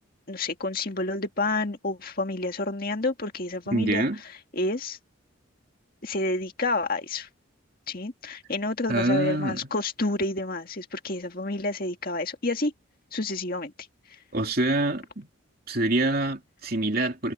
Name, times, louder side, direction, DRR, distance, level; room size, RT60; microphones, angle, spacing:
voice 1, 0.3-4.0 4.5-5.0 6.0-7.3 7.9-12.7 13.1-13.7, left 2 dB, 45° left, 2.0 m, -29 dB
voice 2, 3.7-4.2 8.9-9.7 14.3-15.3 15.7-17.3, right 2 dB, 45° right, 3.0 m, -26 dB
head